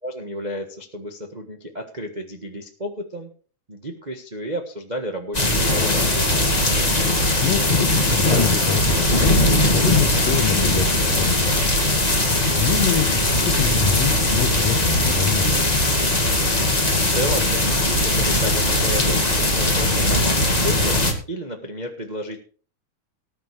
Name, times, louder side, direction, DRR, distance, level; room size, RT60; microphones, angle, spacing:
voice 1, 0.0-3.3 3.7-6.5 17.1-22.4, equal, 30° right, 3 dB, 0.7 m, -32 dB
sound 1, 5.3-21.1, left 1 dB, 15° left, 1.7 m, -19 dB
voice 2, 7.4-11.7 12.6-15.7, left 7 dB, 65° left, 8 dB, 2.4 m, -26 dB
19.5 x 9.0 x 3.4 m, 0.41 s
omnidirectional pair, 3.4 m